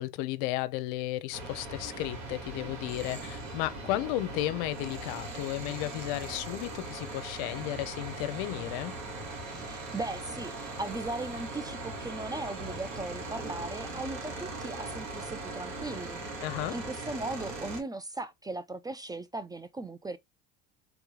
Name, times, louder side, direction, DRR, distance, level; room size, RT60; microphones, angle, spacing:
voice 1, 0.0-8.9 16.4-16.8, left 15 dB, 70° left, 0.6 m, -34 dB
sound 1, 1.3-17.8, right 2 dB, 65° right, 2.3 m, -40 dB
voice 2, 9.5-16.2 16.7-20.2, right 2 dB, 15° right, 0.4 m, -38 dB
3.5 x 3.0 x 3.7 m
supercardioid pair, 90°, 30 cm